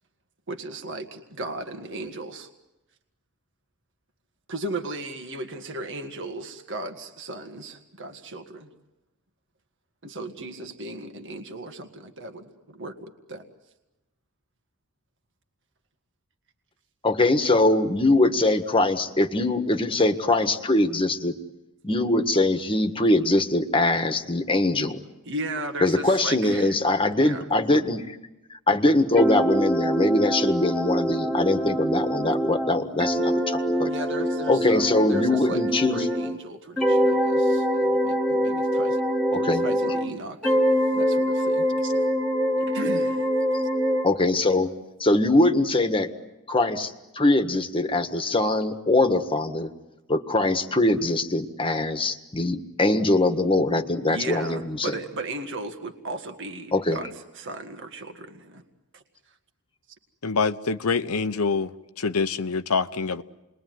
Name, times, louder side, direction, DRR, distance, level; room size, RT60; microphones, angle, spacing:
voice 1, 0.5-2.5 4.5-8.7 10.0-13.4 25.2-26.8 27.2-27.5 33.8-35.6 35.9-39.0 39.3-40.6 40.9-42.1 42.6-43.3 54.1-58.6 58.9-59.0, right 2 dB, 55° right, 6 dB, 1.8 m, -36 dB
voice 2, 17.0-21.3 21.8-25.0 25.8-28.2 28.7-33.9 34.5-36.1 39.3-39.6 44.0-44.7 45.0-46.1 46.5-49.7 50.1-54.9 56.7-57.0, left 2 dB, 25° left, 7 dB, 1.5 m, -22 dB
sound 1, 29.2-36.4 36.8-40.1 40.4-44.1, equal, ahead, 1.9 m, -24 dB
voice 3, 60.2-63.2, left 4 dB, 85° left, 11 dB, 0.9 m, -25 dB
29.0 x 21.5 x 9.4 m, 1.0 s
head